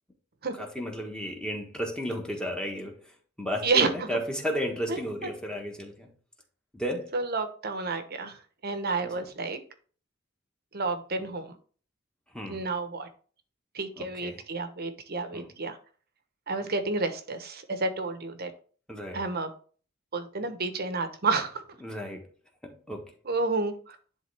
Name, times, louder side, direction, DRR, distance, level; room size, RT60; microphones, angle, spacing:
voice 1, 0.5-6.1 6.7-7.2 9.0-9.1 12.3-12.7 14.0-14.4 15.3-15.5 18.9-19.2 21.8-22.3 22.6-23.2, equal, 5° left, 1.4 m, -34 dB
voice 2, 7.1-8.4 8.6-9.6 10.7-11.6 12.5-13.1 13.7-15.8 16.5-18.5 19.1-19.5 20.1-21.6 23.3-24.0, right 3 dB, 50° right, 1.0 m, -30 dB
10.5 x 3.6 x 3.4 m
head